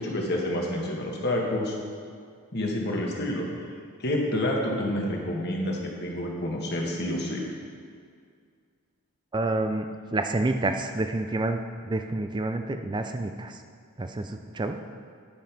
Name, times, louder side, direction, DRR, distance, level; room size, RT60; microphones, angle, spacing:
voice 1, 0.0-1.7 2.5-3.5 4.0-7.4, left 1 dB, 45° left, -1 dB, 1.5 m, -28 dB
voice 2, 9.3-13.6 14.0-14.8, right 2 dB, 20° right, 7 dB, 0.4 m, -29 dB
10.0 x 5.2 x 5.9 m, 2.2 s
head